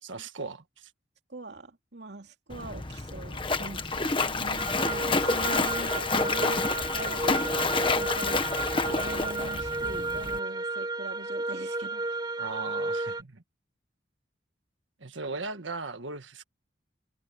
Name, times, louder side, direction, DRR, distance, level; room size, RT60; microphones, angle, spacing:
voice 1, 0.0-0.9 6.4-6.6 12.4-13.4 15.0-16.4, right 3 dB, 85° right, 1.7 m, -38 dB
voice 2, 1.3-8.5 8.9-12.0, right 2 dB, 65° right, 2.7 m, -42 dB
Splash splatter, 2.5-10.4, left 3 dB, 25° left, 1.2 m, -29 dB
sound 1, 4.6-13.2, right 2 dB, 25° right, 2.2 m, -33 dB
head